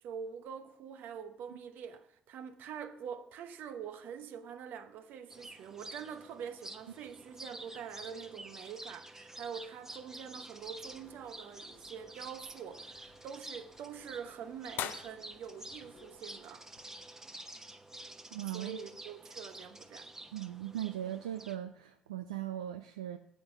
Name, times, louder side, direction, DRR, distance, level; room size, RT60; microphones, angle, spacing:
voice 1, 0.0-17.1 18.5-20.1, right 7 dB, 65° right, 0.9 m, -45 dB
sound 1, 5.3-21.6, right 1 dB, 15° right, 1.0 m, -50 dB
sound 2, 10.6-17.1, left 11 dB, 65° left, 0.5 m, -48 dB
voice 2, 18.3-18.8 20.3-23.2, right 12 dB, 85° right, 0.3 m, -39 dB
9.2 x 8.0 x 5.8 m
figure-of-eight pair, 45°, 3 cm